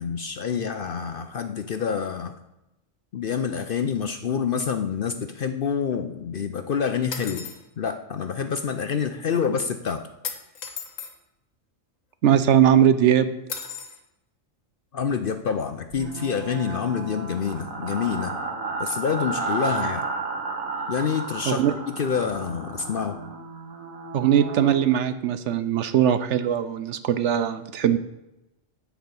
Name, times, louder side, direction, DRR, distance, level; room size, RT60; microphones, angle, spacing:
voice 1, 0.0-2.3 3.1-7.5 7.8-10.1 14.9-18.4 18.8-20.1 20.9-23.2, left 6 dB, 55° left, 8 dB, 0.6 m, -27 dB
sound 1, 7.1-7.6 10.2-11.1 13.5-14.0, left 6 dB, 75° left, 1.5 m, -35 dB
voice 2, 12.2-13.3 21.5-21.7 24.1-28.0, right 9 dB, 65° right, 12 dB, 0.9 m, -20 dB
sound 2, 15.9-24.8, right 3 dB, 85° right, 1.8 m, -33 dB
10.5 x 4.8 x 8.0 m, 0.92 s
omnidirectional pair, 1.4 m